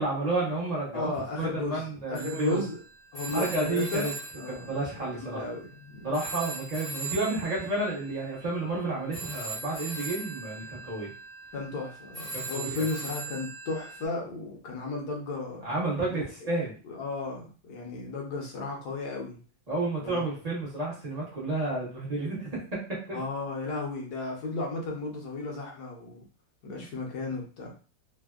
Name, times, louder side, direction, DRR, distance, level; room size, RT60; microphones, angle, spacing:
voice 1, 0.0-1.1 1.4-2.6 3.3-4.1 4.5-5.4 6.0-11.1 12.3-12.8 15.6-16.7 19.7-22.5 23.1-23.2 26.7-26.8, right 2 dB, 50° right, -6 dB, 0.4 m, -31 dB
voice 2, 0.9-1.8 2.1-2.8 3.1-4.1 4.4-6.1 11.5-15.7 16.1-16.2 16.8-19.4 20.0-20.3 23.1-26.2 26.6-27.7, left 3 dB, 65° left, 0 dB, 1.1 m, -34 dB
Telephone, 2.1-5.8 6.1-14.1, right 3 dB, 35° left, 0.4 m, -40 dB
3.3 x 2.1 x 2.3 m, 0.37 s
omnidirectional pair, 2.0 m